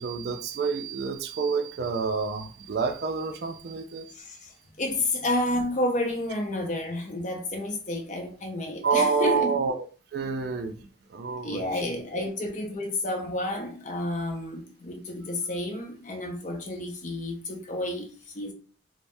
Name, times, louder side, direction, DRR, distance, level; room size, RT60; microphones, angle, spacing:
voice 1, 0.0-4.1 8.8-9.7 10.1-10.8 11.1-11.7 12.1-12.3, right 5 dB, 55° right, 0.3 m, -28 dB
voice 2, 4.1-4.5 4.8-9.7 11.4-18.5, left 1 dB, 40° left, 0.5 m, -30 dB
3.3 x 2.0 x 2.6 m
head